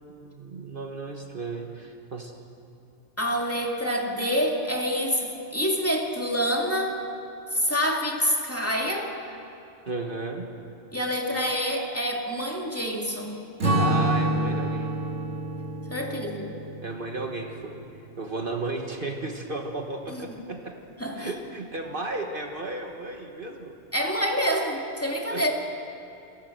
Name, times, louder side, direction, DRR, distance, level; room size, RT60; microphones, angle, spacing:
voice 1, 0.2-2.3 9.9-10.5 13.8-14.9 16.0-16.2 16.8-17.8 18.2-20.7 21.1-23.7 25.3-25.4, right 2 dB, 50° right, 3 dB, 1.5 m, -34 dB
voice 2, 3.2-7.0 7.5-9.1 10.9-13.4 15.9-16.6 21.0-21.3 23.9-25.5, equal, 10° left, 0 dB, 2.3 m, -27 dB
Strum, 13.6-18.3, right 1 dB, 85° right, 2.5 m, -28 dB
29.0 x 14.0 x 7.8 m, 2.7 s
omnidirectional pair, 1.2 m